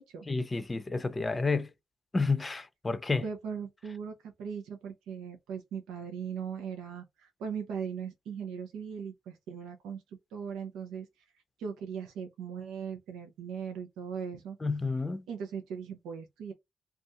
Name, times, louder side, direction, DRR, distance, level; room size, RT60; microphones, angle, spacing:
voice 1, 0.3-1.7 2.1-3.2 14.6-15.2, left 3 dB, 30° left, 0.5 m, -30 dB
voice 2, 3.2-10.0 10.3-11.1 11.6-14.6 15.3-16.5, right 7 dB, 85° right, 0.6 m, -39 dB
2.6 x 2.4 x 3.2 m
supercardioid pair, 55°, 0 cm